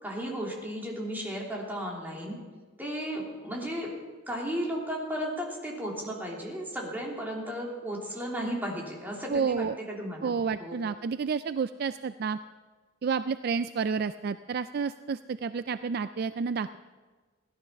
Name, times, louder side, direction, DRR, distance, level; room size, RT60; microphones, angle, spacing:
voice 1, 0.0-2.4 2.8-3.9 4.3-10.8, equal, 10° right, -3 dB, 3.1 m, -34 dB
voice 2, 9.3-9.8 10.2-12.4 13.0-16.8, right 5 dB, 50° right, 12 dB, 0.3 m, -30 dB
17.0 x 12.5 x 5.8 m, 1.4 s
head